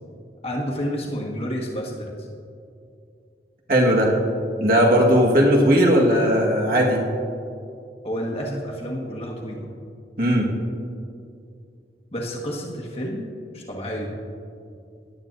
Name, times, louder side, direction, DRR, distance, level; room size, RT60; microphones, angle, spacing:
voice 1, 0.4-2.1 8.0-9.7 12.1-13.3 13.5-14.1, equal, 35° left, -2 dB, 1.6 m, -29 dB
voice 2, 3.7-4.1 4.6-7.0 10.2-10.5, equal, 55° right, -1 dB, 1.7 m, -17 dB
17.5 x 11.0 x 2.7 m, 2.4 s
head